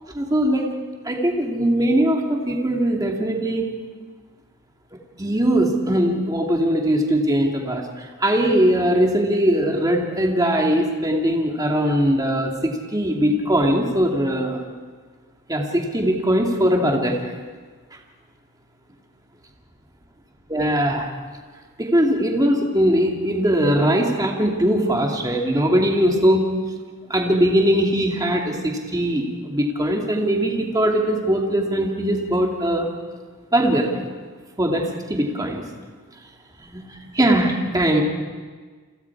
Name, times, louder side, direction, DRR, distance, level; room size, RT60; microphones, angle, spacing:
voice 1, 0.1-0.7 1.0-3.7 5.2-14.6 15.5-17.3 20.5-21.1 21.8-26.5 27.1-32.9 33.5-33.9 34.6-35.6 36.7-36.8 37.1-38.0, right 1 dB, 15° right, 0 dB, 2.6 m, -20 dB
30.0 x 23.5 x 4.8 m, 1.5 s
head